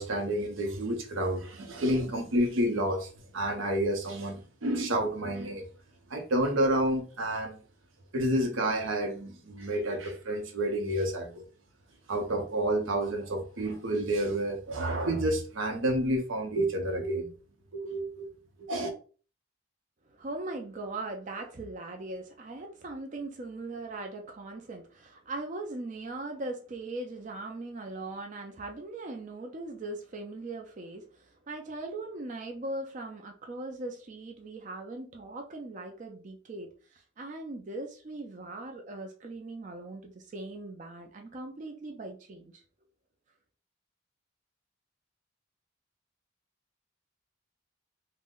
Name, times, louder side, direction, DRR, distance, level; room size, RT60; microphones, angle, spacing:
voice 1, 0.0-5.7 6.1-7.6 8.1-11.4 12.1-17.3 17.7-18.3 18.6-18.9, right 1 dB, 90° right, 0.7 m, -29 dB
voice 2, 20.1-42.6, right 2 dB, 40° right, 0.4 m, -40 dB
2.5 x 2.0 x 3.6 m
head